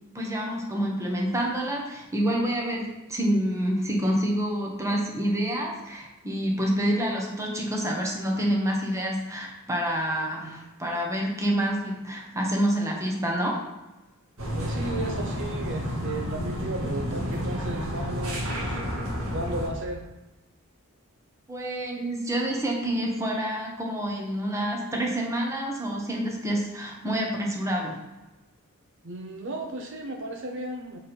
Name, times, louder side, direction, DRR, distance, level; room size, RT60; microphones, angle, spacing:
voice 1, 0.1-13.6 21.5-28.0, equal, 15° right, -1 dB, 1.2 m, -27 dB
sound 1, 14.4-19.7, equal, 75° right, 1.8 m, -30 dB
voice 2, 14.5-18.8 19.3-20.0 29.0-31.0, right 1 dB, 55° right, 2 dB, 0.7 m, -34 dB
7.3 x 4.2 x 4.4 m, 1.1 s
head